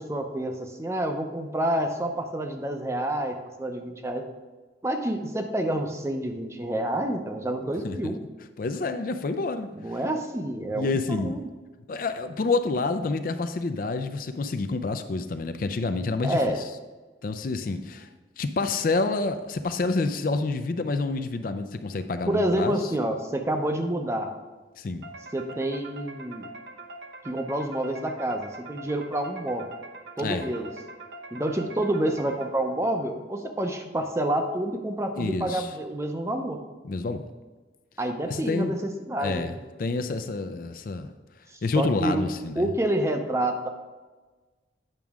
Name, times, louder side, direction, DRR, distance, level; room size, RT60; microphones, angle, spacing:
voice 1, 0.0-4.3 4.8-8.2 9.8-11.4 16.2-16.6 22.3-24.3 25.3-26.5 27.2-29.7 30.2-30.7 31.3-36.6 38.0-39.6 41.8-42.2 42.6-43.7, right 1 dB, 15° right, 5 dB, 0.6 m, -28 dB
voice 2, 8.6-10.0 10.7-11.4 11.9-16.7 17.2-18.1 18.4-22.8 24.8-25.1 30.2-30.5 35.2-35.7 36.8-37.2 38.3-38.7 39.2-41.1 41.6-42.7, left 3 dB, 50° left, 9 dB, 0.4 m, -28 dB
sound 1, 25.0-32.9, right 2 dB, 70° right, 0.7 m, -43 dB
8.9 x 6.0 x 3.5 m, 1.3 s
head